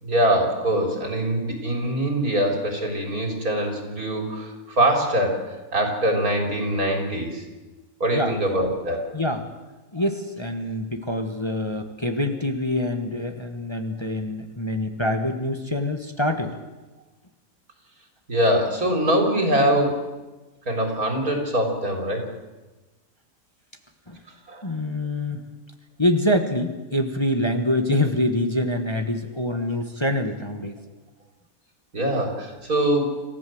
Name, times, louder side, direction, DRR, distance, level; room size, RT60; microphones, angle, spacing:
voice 1, 0.0-7.4 8.0-9.1 18.3-20.0 20.7-22.2 24.5-24.7 29.6-29.7 31.9-33.1, right 1 dB, 75° right, 3 dB, 4.6 m, -23 dB
voice 2, 9.1-9.5 9.9-16.5 24.1-24.2 24.6-25.4 26.0-30.8, left 1 dB, 20° left, 5 dB, 1.5 m, -25 dB
26.5 x 15.5 x 7.9 m, 1.2 s
omnidirectional pair, 1.5 m